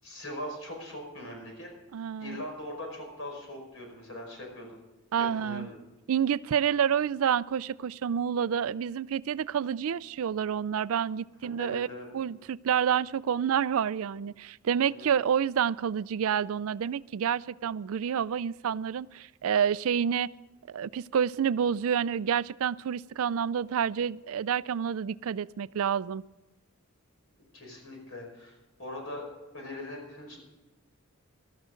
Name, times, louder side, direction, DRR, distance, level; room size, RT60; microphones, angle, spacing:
voice 1, 0.0-1.7 2.2-4.8 5.2-5.8 11.6-12.1 14.9-15.1 27.5-29.3 29.5-30.4, left 1 dB, 60° left, 1 dB, 5.3 m, -41 dB
voice 2, 1.9-2.4 5.1-5.7 6.1-11.9 12.1-20.3 20.7-26.2, right 8 dB, 70° right, 19 dB, 0.4 m, -28 dB
18.5 x 13.5 x 3.8 m, 1.1 s
head